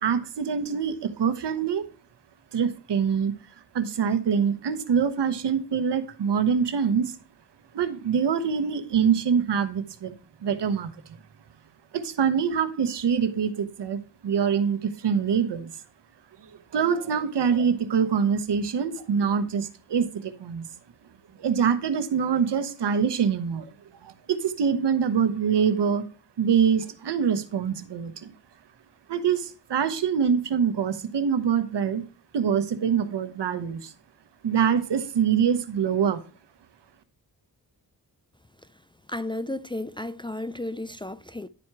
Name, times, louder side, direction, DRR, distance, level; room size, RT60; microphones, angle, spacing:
voice 1, 0.0-1.8 2.5-3.3 3.7-7.2 7.7-10.1 10.4-10.9 11.9-14.0 14.2-15.7 16.5-20.6 21.4-23.7 24.0-26.0 26.4-28.3 29.1-32.0 32.3-33.9 34.4-36.2, right 7 dB, 80° right, 1.1 m, -24 dB
voice 2, 39.1-41.5, left 1 dB, 15° left, 0.4 m, -33 dB
11.0 x 4.3 x 4.7 m
cardioid pair, 65°, 41 cm